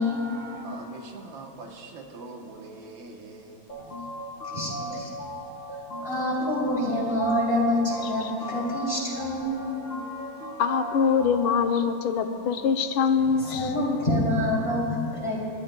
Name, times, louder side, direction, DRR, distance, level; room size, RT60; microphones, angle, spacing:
voice 1, 0.0-0.7 4.0-4.1 4.4-5.1 6.0-10.6 13.4-15.4, left 1 dB, 15° left, -5 dB, 2.8 m, -27 dB
voice 2, 0.6-3.8, right 3 dB, 75° right, 2 dB, 1.8 m, -43 dB
sound 1, 3.7-11.7, equal, 50° left, 2.0 m, -38 dB
voice 3, 10.6-13.7, left 6 dB, 85° left, 6 dB, 1.5 m, -24 dB
28.0 x 12.0 x 2.2 m, 2.6 s
omnidirectional pair, 2.2 m